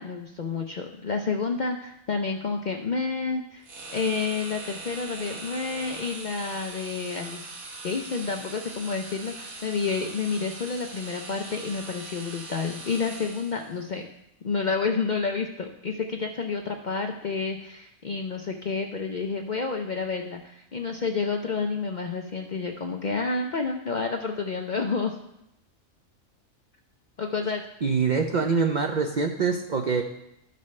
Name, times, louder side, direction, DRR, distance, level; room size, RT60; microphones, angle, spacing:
voice 1, 0.0-3.6 3.9-7.4 7.8-14.1 14.4-25.2 27.2-27.6, left 4 dB, 55° left, 3 dB, 0.5 m, -29 dB
sound 1, 3.6-13.7, right 2 dB, 90° right, 1.7 m, -41 dB
voice 2, 27.8-30.0, right 5 dB, 50° right, 3 dB, 0.6 m, -24 dB
13.0 x 5.4 x 3.2 m, 0.81 s
omnidirectional pair, 1.4 m